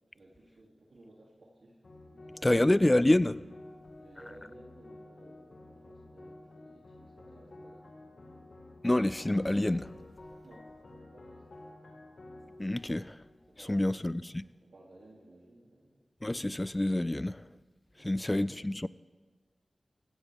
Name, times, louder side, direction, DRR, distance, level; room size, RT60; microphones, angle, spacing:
voice 1, 0.1-2.8 3.9-8.4 10.4-10.7 11.1-11.8 13.5-14.3 14.6-16.0 17.9-18.6, right 1 dB, 80° right, 2.8 m, -57 dB
sound 1, 1.8-14.3, left 2 dB, 70° left, 1.8 m, -52 dB
voice 2, 2.4-3.4 8.8-9.9 12.6-13.2 13.7-14.4 16.2-17.4 18.0-18.9, left 1 dB, 25° left, 0.4 m, -27 dB
15.5 x 15.5 x 3.5 m
cardioid pair, 45°, 0 cm